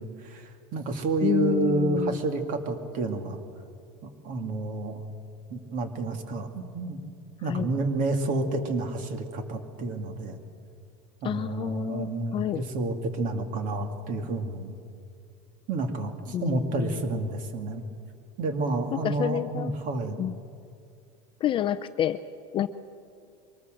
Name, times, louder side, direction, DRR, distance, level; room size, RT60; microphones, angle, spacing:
voice 1, 0.0-3.4 4.0-5.0 5.5-7.0 7.4-10.4 11.2-14.8 15.7-17.8 18.4-20.2, right 2 dB, 40° right, 7 dB, 2.2 m, -30 dB
voice 2, 1.2-2.2 7.4-7.7 11.2-12.6 16.3-17.0 18.9-19.7 20.2-20.3 21.4-22.2 22.5-22.7, left 11 dB, 25° left, 12 dB, 0.5 m, -29 dB
23.5 x 19.5 x 7.6 m, 2.4 s
cardioid pair, 165°, 20 cm